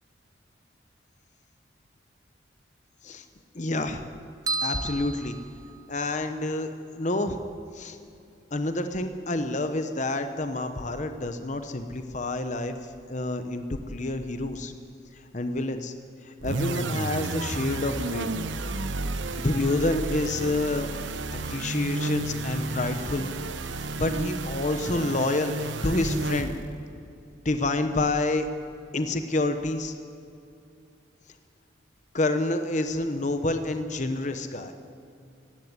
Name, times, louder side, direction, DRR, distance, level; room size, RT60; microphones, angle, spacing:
voice 1, 3.5-4.1 4.6-5.3 5.9-6.7 7.0-7.4 7.7-8.0 8.5-14.7 15.1-15.9 16.2-18.3 19.4-20.9 21.3-23.3 24.0-26.5 27.4-28.5 28.9-29.9 32.1-34.7, left 2 dB, 40° left, 8 dB, 0.9 m, -28 dB
sound 1, 4.5-6.2, right 2 dB, 20° right, 0.5 m, -33 dB
sound 2, 16.4-26.8, right 2 dB, 70° right, 1.0 m, -31 dB
18.0 x 16.0 x 9.6 m, 2.6 s
head